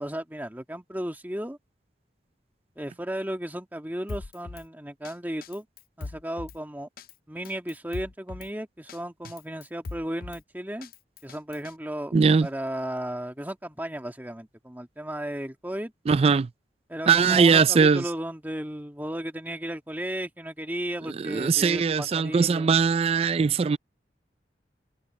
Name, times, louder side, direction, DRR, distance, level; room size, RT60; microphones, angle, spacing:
voice 1, 0.0-1.6 2.8-5.7 6.0-6.9 7.3-10.9 11.2-12.1 12.4-15.9 16.9-22.7, right 1 dB, 10° right, 1.9 m, -34 dB
Drum kit, 4.1-4.7 5.0-5.1 5.4-6.6 7.0-7.1 7.4-8.5 8.9-9.0 9.2-10.4 10.8-11.7, left 3 dB, 50° left, 0.5 m, -40 dB
voice 2, 12.1-12.5 16.1-16.5 17.1-18.0 21.2-23.8, right 5 dB, 35° right, 0.3 m, -20 dB
head